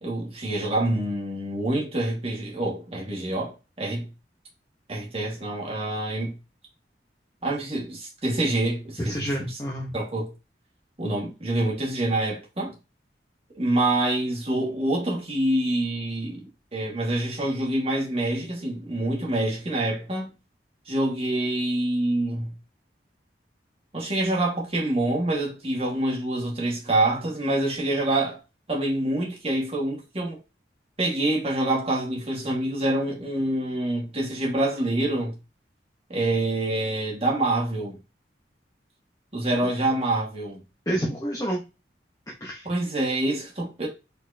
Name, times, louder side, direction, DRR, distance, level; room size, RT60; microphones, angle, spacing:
voice 1, 0.0-4.1 4.9-6.3 7.4-9.6 9.9-10.3 11.0-12.7 13.5-16.5 16.7-20.3 20.9-22.5 23.9-28.4 28.7-30.4 31.0-35.4 36.1-38.0 39.3-40.6 42.6-43.9, right 1 dB, 35° right, 1.6 m, -26 dB
voice 2, 9.0-10.0 39.6-39.7 40.9-41.6 42.4-42.7, right 1 dB, 20° left, 0.9 m, -28 dB
4.3 x 4.1 x 2.7 m
head